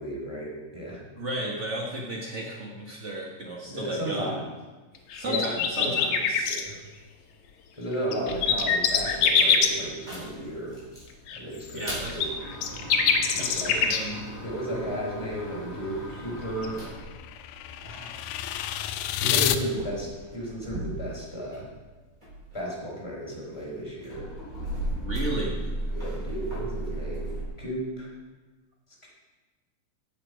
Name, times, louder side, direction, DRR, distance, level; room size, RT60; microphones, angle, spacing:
voice 1, 0.0-1.0 3.6-4.5 5.2-6.2 6.5-6.8 7.8-10.8 11.3-12.3 13.3-13.7 14.4-16.8 17.8-18.2 19.2-21.7 22.5-24.3 25.9-27.3 27.6-28.1 29.0-29.1, equal, 10° left, -5 dB, 3.8 m, -34 dB
voice 2, 1.2-4.4 5.1-6.6 11.7-12.2 13.4-14.3 25.0-25.7, right 1 dB, 80° right, -2 dB, 0.6 m, -34 dB
sound 1, 5.1-6.6 7.9-9.7 11.3-14.0 16.6-16.7, left 7 dB, 70° left, 2.3 m, -24 dB
sound 2, 8.3-11.1 11.6-18.4 19.1-21.8 22.1-27.5, right 1 dB, 10° right, 4.7 m, -37 dB
sound 3, 16.0-19.6, left 11 dB, 90° left, 2.2 m, -30 dB
14.5 x 8.9 x 5.1 m, 1.3 s
omnidirectional pair, 3.7 m